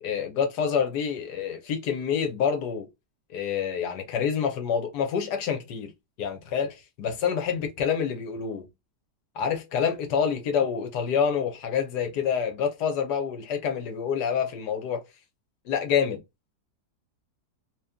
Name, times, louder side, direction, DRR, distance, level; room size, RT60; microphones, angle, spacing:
voice 1, 0.0-2.9 3.3-5.9 6.2-8.7 9.3-15.0 15.6-16.2, left 7 dB, 80° left, 1.5 m, -27 dB
3.0 x 3.0 x 3.4 m
omnidirectional pair, 1.7 m